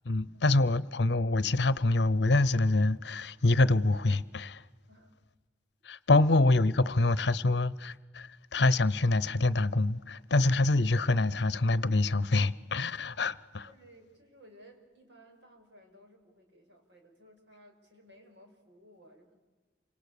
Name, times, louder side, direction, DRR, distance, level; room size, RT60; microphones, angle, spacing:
voice 1, 0.0-4.6 5.8-13.7, left 2 dB, 70° left, 0.8 m, -26 dB
voice 2, 13.6-19.4, equal, 75° right, 5.6 m, -57 dB
28.0 x 26.0 x 6.8 m
head